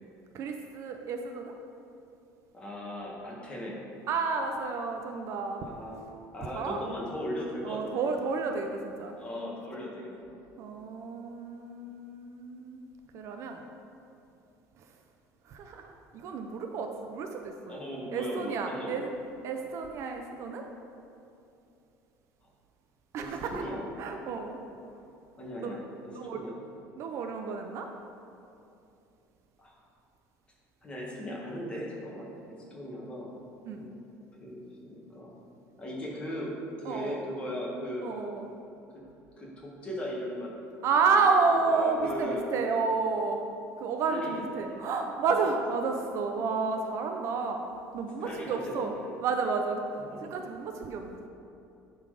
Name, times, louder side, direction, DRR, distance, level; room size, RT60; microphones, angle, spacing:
voice 1, 0.3-1.5 4.1-5.7 6.5-6.9 7.6-9.1 10.6-12.8 13.1-13.6 15.5-17.8 18.1-19.1 19.4-20.6 23.1-24.6 25.6-25.7 26.1-26.4 27.0-27.9 33.7-33.9 36.8-37.2 38.0-38.5 40.8-43.4 43.8-47.6 47.9-48.9 49.2-51.3, right 4 dB, 50° right, 4 dB, 0.6 m, -31 dB
voice 2, 2.5-3.8 5.6-6.0 6.3-8.1 9.1-10.3 17.7-19.1 23.2-23.8 25.4-26.6 29.6-29.8 30.8-33.4 33.7-34.0 34.4-35.4 35.8-38.1 38.9-39.0 39.4-40.5 41.0-41.2 41.6-42.4 44.1-44.8 45.3-45.6 48.2-49.2 50.1-50.2, equal, 15° left, -4 dB, 1.7 m, -38 dB
11.0 x 4.0 x 4.9 m, 2.7 s
cardioid pair, 155°, 6 cm